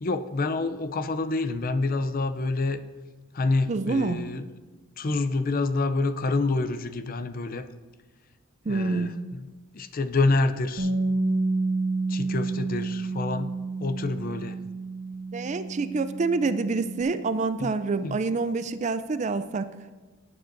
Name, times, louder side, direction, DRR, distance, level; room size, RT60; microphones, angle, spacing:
voice 1, 0.0-2.8 3.3-4.5 5.0-7.6 8.7-9.5 9.7-10.9 12.1-13.5 13.8-14.6 17.6-17.7 18.0-18.2, left 3 dB, 45° left, 11 dB, 0.5 m, -27 dB
voice 2, 3.7-4.2 8.7-9.2 15.3-19.7, right 3 dB, 35° right, 12 dB, 0.4 m, -27 dB
Bass guitar, 10.8-17.0, right 3 dB, 65° right, 1.5 m, -29 dB
18.0 x 9.1 x 2.6 m, 1.3 s
head